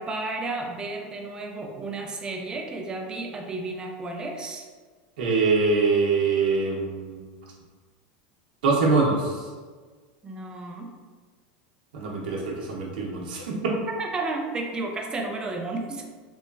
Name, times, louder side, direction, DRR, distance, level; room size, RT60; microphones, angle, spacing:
voice 1, 0.0-4.7 10.2-10.9 13.9-16.1, right 3 dB, 15° right, 2 dB, 0.3 m, -32 dB
voice 2, 5.2-7.3 8.6-9.4 11.9-13.7, right 4 dB, 85° right, -2 dB, 0.7 m, -24 dB
3.0 x 2.4 x 2.2 m, 1.4 s
supercardioid pair, 140°, 5 cm